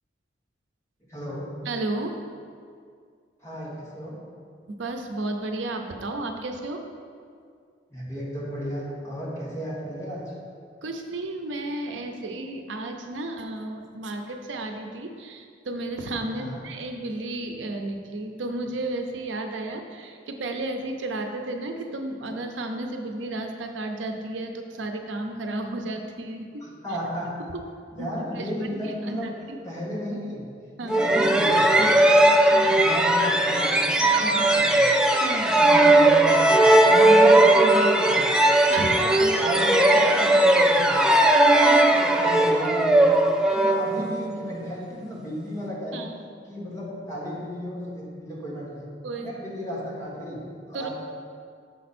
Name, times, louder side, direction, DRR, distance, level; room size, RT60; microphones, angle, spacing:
voice 1, 1.1-1.5 3.4-4.2 7.9-10.2 16.3-16.6 26.6-27.3 27.9-29.3 29.6-30.5 30.8-32.3 32.6-34.9 35.4-38.3 38.8-41.0 41.9-43.3 43.5-46.1 46.5-48.9 49.1-50.9, equal, 15° left, -6 dB, 1.6 m, -33 dB
voice 2, 1.7-2.2 4.7-6.9 10.8-26.7 28.0-28.5 28.8-29.6 30.8-31.0 32.5-32.7 35.2-35.5 38.7-38.9 41.3-42.0 45.9-46.1 49.0-49.3 50.7-50.9, right 2 dB, 90° right, 4 dB, 0.6 m, -33 dB
sound 1, 30.9-44.4, right 1 dB, 5° right, 0.3 m, -18 dB
6.9 x 5.2 x 4.3 m, 2.2 s
head